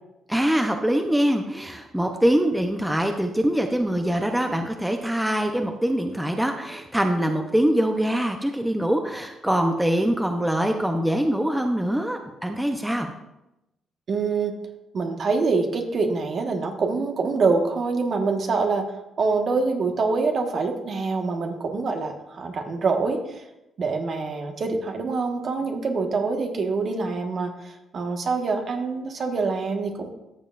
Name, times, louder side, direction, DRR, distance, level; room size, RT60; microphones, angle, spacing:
voice 1, 0.3-13.1, right 1 dB, 5° right, 4 dB, 0.8 m, -23 dB
voice 2, 14.1-14.5 14.9-23.4 23.8-30.1, right 4 dB, 55° right, 3 dB, 1.5 m, -25 dB
14.0 x 7.1 x 2.5 m, 0.92 s
cardioid pair, 90°, 0 cm